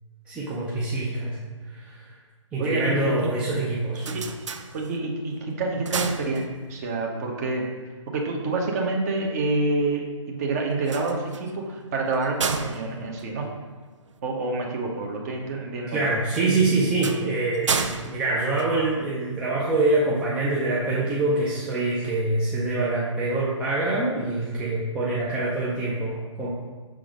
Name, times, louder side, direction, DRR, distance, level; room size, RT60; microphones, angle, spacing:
voice 1, 0.3-1.4 1.7-2.1 2.5-4.1 15.9-26.5, right 2 dB, 5° right, -6 dB, 0.5 m, -25 dB
voice 2, 2.6-3.3 4.1-4.3 4.7-7.7 8.1-13.5 14.2-16.1, right 2 dB, 30° right, 0 dB, 1.0 m, -28 dB
sound 1, 3.7-5.2 5.6-6.9 10.7-14.2 16.3-19.3, right 5 dB, 70° right, 0.6 m, -33 dB
6.1 x 3.7 x 5.0 m, 1.4 s
figure-of-eight pair, 145°, 16 cm